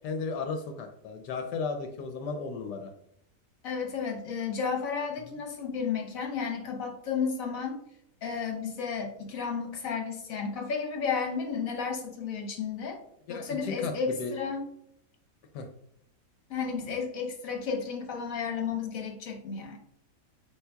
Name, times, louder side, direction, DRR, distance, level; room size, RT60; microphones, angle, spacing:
voice 1, 0.0-2.9 13.3-13.9 14.2-14.3 15.5-15.7, left 4 dB, 75° left, 5 dB, 1.1 m, -34 dB
voice 2, 3.6-7.8 8.2-13.0 13.3-14.6 16.5-19.8, left 6 dB, 55° left, 2 dB, 1.2 m, -32 dB
7.9 x 2.9 x 2.2 m, 0.72 s
omnidirectional pair, 1.9 m